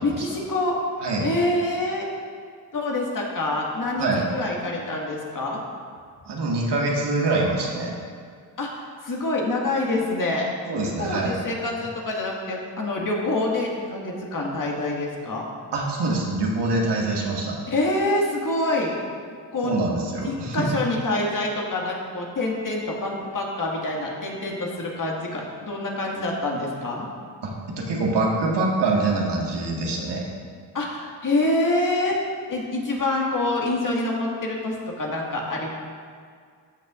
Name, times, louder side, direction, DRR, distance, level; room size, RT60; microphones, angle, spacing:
voice 1, 0.0-0.8 1.2-2.1 2.7-5.6 8.6-8.7 9.0-10.5 11.0-15.5 17.7-18.9 19.5-19.7 20.2-27.1 30.7-32.2 32.5-35.7, left 2 dB, 40° left, -2 dB, 2.0 m, -26 dB
voice 2, 6.3-7.9 10.7-11.4 15.7-17.6 19.6-20.8 27.4-30.3, right 2 dB, 60° right, -2 dB, 1.8 m, -24 dB
14.0 x 6.2 x 2.5 m, 2.1 s
supercardioid pair, 60°, 46 cm